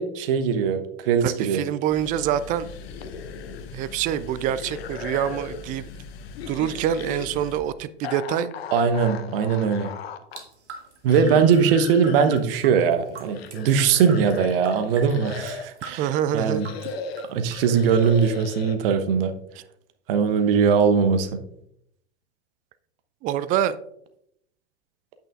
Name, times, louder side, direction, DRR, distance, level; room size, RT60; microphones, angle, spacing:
voice 1, 0.0-1.6 8.7-9.9 11.0-16.1 16.3-16.7 17.3-19.3 20.1-21.3, right 6 dB, 55° right, 1.0 m, -21 dB
voice 2, 1.2-2.7 3.7-5.9 6.5-8.5 16.0-16.6 23.2-23.8, right 10 dB, 25° right, 0.4 m, -25 dB
sound 1, 1.9-7.6, left 5 dB, 35° left, 1.0 m, -41 dB
sound 2, 2.6-3.8 4.0-5.7 6.3-7.3 8.0-10.4 11.1-12.4 13.0-15.8 16.4-18.8, left 6 dB, 60° left, 0.8 m, -37 dB
sound 3, 10.3-15.1 15.4-18.3, right 4 dB, 75° right, 1.6 m, -42 dB
8.6 x 8.6 x 2.5 m
figure-of-eight pair, 85°, 35 cm